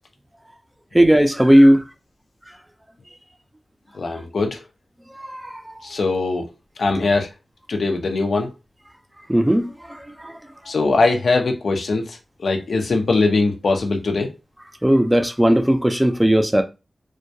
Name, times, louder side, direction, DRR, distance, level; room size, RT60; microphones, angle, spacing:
voice 1, 0.9-1.8 5.2-5.8 9.3-10.3 14.8-16.6, equal, 10° right, 0.4 m, -16 dB
voice 2, 3.9-4.6 5.8-6.5 6.8-7.3 7.7-8.5 10.7-14.3, left 3 dB, 80° left, 0.6 m, -21 dB
2.2 x 2.1 x 2.7 m
cardioid pair, 60°, 0 cm